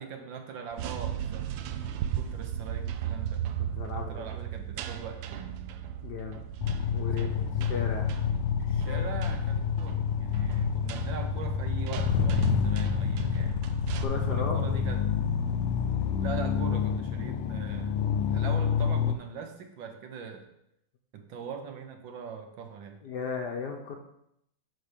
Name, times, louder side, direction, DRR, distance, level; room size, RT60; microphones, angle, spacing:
voice 1, 0.0-1.5 2.1-3.5 3.9-5.5 7.0-7.7 8.6-13.6 14.1-15.0 16.2-20.5 21.1-23.0, right 6 dB, 65° right, 6 dB, 1.5 m, -41 dB
sound 1, 0.7-14.0, right 10 dB, 85° right, 1.6 m, -37 dB
voice 2, 3.8-4.2 6.0-6.4 6.9-7.4 7.7-8.1 14.0-14.7 17.3-17.4 23.0-24.0, left 5 dB, 60° left, 2 dB, 1.2 m, -35 dB
sound 2, 6.6-19.2, left 7 dB, 85° left, 1.6 m, -28 dB
10.0 x 4.2 x 5.1 m, 0.76 s
omnidirectional pair, 2.4 m